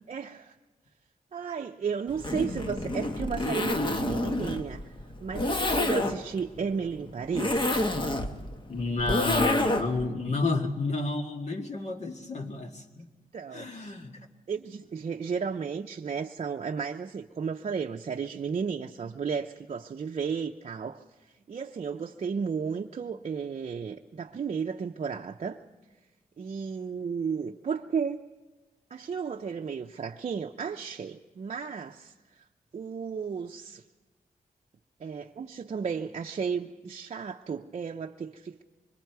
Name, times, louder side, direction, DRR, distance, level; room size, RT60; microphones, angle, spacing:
voice 1, 0.1-0.5 1.3-4.8 5.2-7.8 13.3-13.9 14.5-21.0 21.5-25.6 26.4-28.2 28.9-32.4 32.7-33.8 35.0-38.6, right 6 dB, 50° right, 0.6 m, -33 dB
Zipper (clothing), 2.1-10.1, left 1 dB, 35° left, 1.3 m, -28 dB
voice 2, 8.7-13.1 13.5-14.2, left 3 dB, 50° left, 1.9 m, -31 dB
25.0 x 22.0 x 4.7 m
cardioid pair, 90°, 15 cm